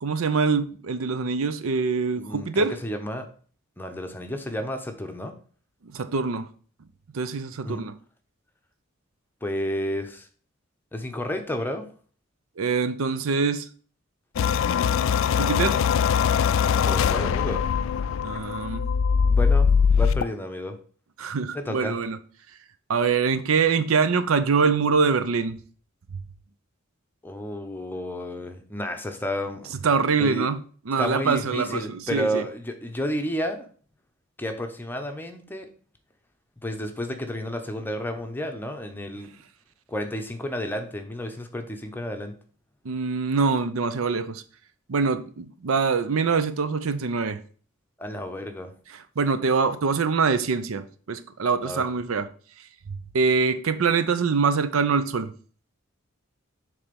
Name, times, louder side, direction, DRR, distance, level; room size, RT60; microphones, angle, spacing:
voice 1, 0.0-2.7 5.9-6.4 7.1-7.9 12.6-13.7 15.4-15.8 18.2-18.9 21.2-22.2 22.9-25.6 29.8-30.6 30.9-32.4 42.8-44.4 44.9-47.4 49.2-52.3 53.1-55.3, right 5 dB, 85° right, 0.6 m, -24 dB
voice 2, 2.2-3.3 3.8-5.4 7.6-7.8 9.4-10.3 10.9-11.9 16.9-17.7 19.2-20.8 21.5-22.0 27.2-29.7 30.2-30.5 31.0-33.7 34.4-35.7 36.6-39.3 39.9-42.3 48.0-48.7 51.6-51.8, equal, 10° left, 0.7 m, -31 dB
sound 1, 14.4-20.2, left 6 dB, 65° left, 0.3 m, -22 dB
7.1 x 3.4 x 5.2 m
head